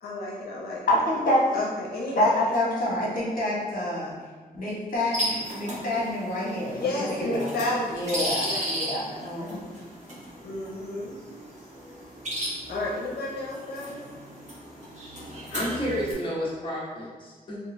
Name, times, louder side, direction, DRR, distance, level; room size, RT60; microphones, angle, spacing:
voice 1, 0.0-0.8 1.5-2.5 6.7-7.9 8.4-8.7 9.1-9.5 10.4-11.1 12.7-14.0, left 2 dB, 85° left, -4 dB, 0.6 m, -31 dB
voice 2, 0.9-1.6 2.1-4.2 4.5-6.9 7.2-7.5 7.9-9.7, left 1 dB, 60° left, -5 dB, 1.0 m, -27 dB
sound 1, 5.1-16.1, equal, 50° right, 1.0 m, -35 dB
voice 3, 15.2-17.6, equal, 30° left, -6 dB, 0.7 m, -31 dB
3.7 x 2.7 x 2.6 m, 1.4 s
wide cardioid pair, 175°, 16 cm